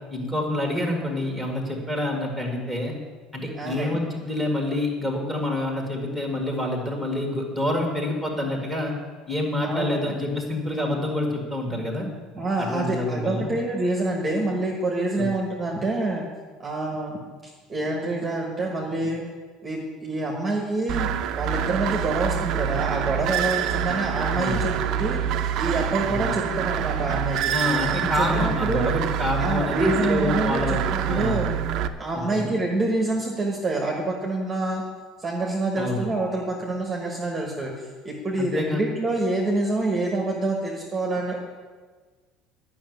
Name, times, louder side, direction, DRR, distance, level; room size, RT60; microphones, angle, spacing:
voice 1, 0.1-2.9 3.3-8.9 9.3-12.1 12.6-13.5 15.2-15.3 24.3-24.6 26.3-26.4 27.5-31.4 32.3-32.5 35.8-36.1 38.4-38.8, left 1 dB, 5° left, 1 dB, 1.9 m, -27 dB
voice 2, 3.5-4.0 9.6-10.1 12.3-16.3 16.6-17.2 17.4-19.2 19.6-21.1 21.3-25.2 25.6-27.5 28.2-28.9 29.4-31.5 32.0-34.8 35.2-41.5, right 2 dB, 15° right, -1 dB, 1.3 m, -27 dB
sound 1, 20.9-31.9, right 9 dB, 45° right, 0.6 m, -26 dB
11.5 x 6.1 x 9.2 m, 1.4 s
cardioid pair, 180°, 0 cm